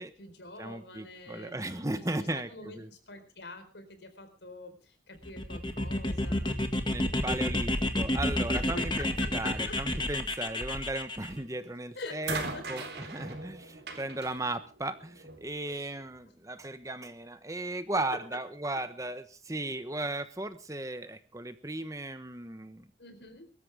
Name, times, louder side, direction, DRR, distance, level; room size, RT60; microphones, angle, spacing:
voice 1, 0.0-6.7 8.5-9.8 11.9-12.9 15.6-15.9 16.2-16.4 23.0-23.5, left 2 dB, 80° left, 8 dB, 4.3 m, -46 dB
voice 2, 0.6-2.9 6.9-22.9, right 2 dB, 20° right, 11 dB, 1.1 m, -36 dB
sound 1, 5.2-11.3, left 1 dB, 25° left, 1.9 m, -30 dB
sound 2, 11.3-11.6 12.2-15.5 16.5-16.6, right 3 dB, 70° right, 3.9 m, -40 dB
23.5 x 13.5 x 3.6 m, 0.35 s
head